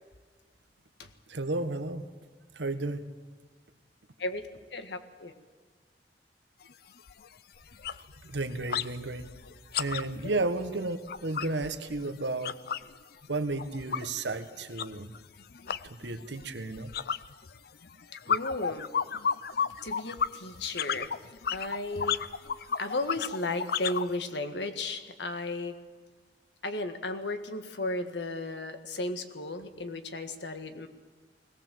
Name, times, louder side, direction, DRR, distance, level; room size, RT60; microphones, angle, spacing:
voice 1, 1.3-2.1 2.5-3.0 8.2-9.3 9.8-12.5 13.3-15.1 16.0-16.9, right 2 dB, 80° right, 9 dB, 1.4 m, -33 dB
voice 2, 4.2-5.3 10.2-10.4 18.3-18.9 19.8-21.1 21.5-22.2 22.8-25.7 26.6-30.9, left 2 dB, 75° left, 8 dB, 1.7 m, -34 dB
sound 1, 6.6-6.7 7.1-7.3 7.6-8.9 9.2-12.9 13.2-24.1, left 7 dB, 60° left, 0.5 m, -33 dB
21.0 x 18.0 x 7.6 m, 1.5 s
head